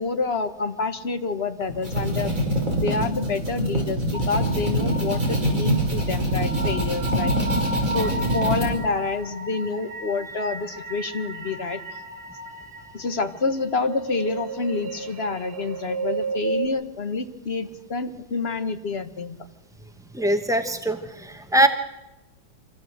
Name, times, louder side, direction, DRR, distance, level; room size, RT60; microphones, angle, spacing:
voice 1, 0.0-7.4 7.9-11.8 12.9-19.4, left 4 dB, 35° left, 9 dB, 1.2 m, -28 dB
sound 1, 1.6-8.7, right 1 dB, 20° right, 5.7 m, -24 dB
sound 2, 4.1-16.7, right 2 dB, 50° right, 2.7 m, -33 dB
voice 2, 20.1-21.7, right 1 dB, 5° right, 7 dB, 0.3 m, -22 dB
25.5 x 16.5 x 7.9 m, 1.0 s
omnidirectional pair, 2.2 m